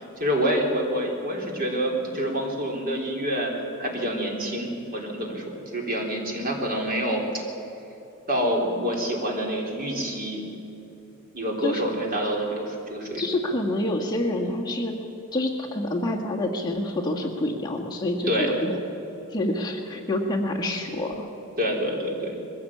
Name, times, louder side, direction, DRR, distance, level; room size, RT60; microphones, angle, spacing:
voice 1, 0.2-7.4 8.3-10.5 11.3-13.3 14.4-14.6 18.3-18.6 21.6-22.4, equal, 45° right, 0 dB, 3.8 m, -27 dB
voice 2, 13.2-14.9 15.3-18.8 19.3-21.3, left 1 dB, 20° left, -1 dB, 1.8 m, -27 dB
21.5 x 16.0 x 8.6 m, 2.9 s
head